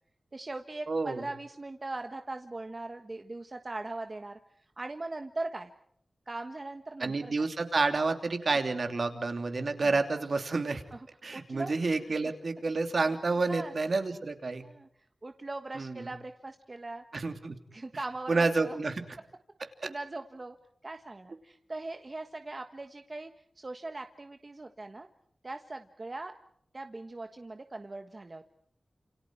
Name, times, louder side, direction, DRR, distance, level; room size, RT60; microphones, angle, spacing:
voice 1, 0.3-4.4 4.8-5.7 6.3-7.5 10.9-11.0 11.3-11.7 13.5-13.7 14.6-14.9 15.2-17.0 17.7-18.8 19.8-20.6 20.8-23.3 23.6-25.1 25.4-26.3 26.7-28.4, right 2 dB, 35° right, 6 dB, 1.4 m, -40 dB
voice 2, 0.9-1.3 7.0-10.8 11.2-14.6 15.7-16.1 17.1-17.6 18.3-19.0 19.8-19.9, right 3 dB, 60° right, 6 dB, 3.0 m, -29 dB
30.0 x 28.0 x 4.7 m, 0.68 s
wide cardioid pair, 100°, 0 cm